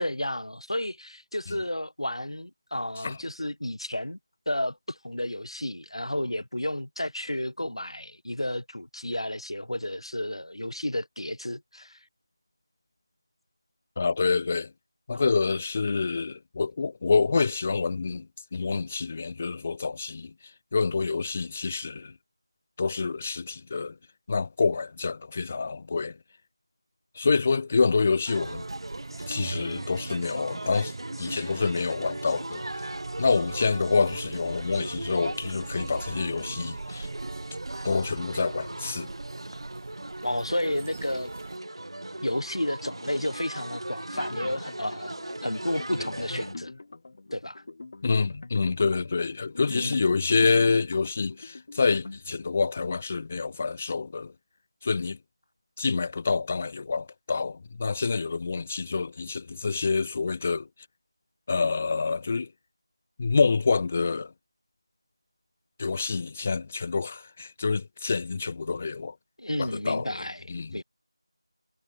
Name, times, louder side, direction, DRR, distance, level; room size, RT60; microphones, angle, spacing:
voice 1, 0.0-4.2 4.5-12.0 15.1-15.2 40.2-41.3 42.2-45.2 45.4-46.7 47.3-47.6 49.7-50.0 69.4-70.8, left 1 dB, 80° left, 4.8 m, -32 dB
voice 2, 14.0-14.7 15.1-20.3 20.7-22.1 22.8-24.0 24.3-26.2 27.2-28.6 29.3-30.9 31.2-32.7 33.2-37.1 37.8-39.1 48.0-54.3 54.8-55.2 55.8-60.7 61.5-62.5 63.2-64.3 65.8-69.1 69.6-70.8, left 4 dB, 15° left, 0.4 m, -27 dB
sound 1, 28.2-46.5, right 1 dB, 65° right, 2.2 m, -39 dB
sound 2, 28.4-41.6, right 3 dB, 30° right, 4.2 m, -41 dB
sound 3, 44.1-52.7, left 3 dB, 35° left, 7.7 m, -43 dB
figure-of-eight pair, 175°, 3 cm